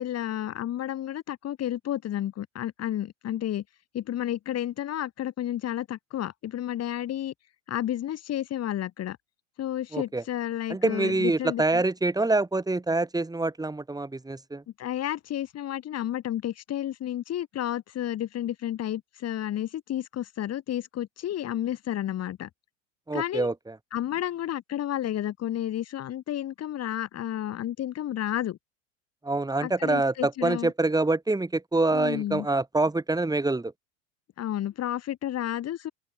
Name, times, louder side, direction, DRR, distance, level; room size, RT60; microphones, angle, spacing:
voice 1, 0.0-3.6 3.9-7.3 7.7-9.2 9.6-11.8 14.8-22.5 23.1-23.5 23.9-28.6 29.6-30.7 31.9-32.5 34.4-35.9, left 12 dB, 40° left, 5.5 m, -31 dB
voice 2, 9.9-10.2 10.7-14.6 23.1-23.7 29.2-33.7, right 2 dB, 10° right, 6.7 m, -26 dB
open air
hypercardioid pair, 80°, 39 cm